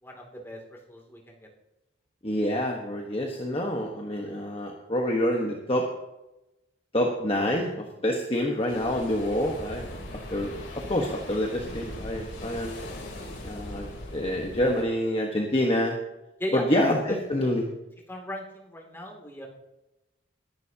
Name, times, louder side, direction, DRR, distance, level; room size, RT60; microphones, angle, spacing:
voice 1, 0.0-1.5 16.4-17.0 17.3-17.5 18.1-19.5, equal, 10° left, 0 dB, 2.6 m, -38 dB
voice 2, 2.2-5.9 6.9-9.9 10.3-12.8 13.4-15.9 16.5-17.6, left 1 dB, 30° left, 0 dB, 1.3 m, -27 dB
sound 1, 8.7-14.8, left 1 dB, 75° left, 3.5 m, -39 dB
21.0 x 11.0 x 2.9 m, 0.95 s
head